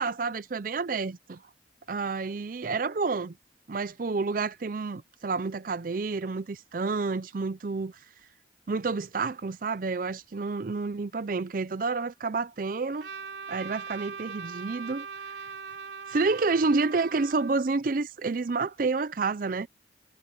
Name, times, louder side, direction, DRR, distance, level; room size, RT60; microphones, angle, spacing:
voice 1, 0.0-1.4 1.9-3.4 3.7-8.0 8.7-13.1 13.5-15.4 16.1-19.7, right 4 dB, 50° right, 0.5 m, -29 dB
Trumpet, 13.0-17.7, right 6 dB, 70° right, 3.0 m, -40 dB
head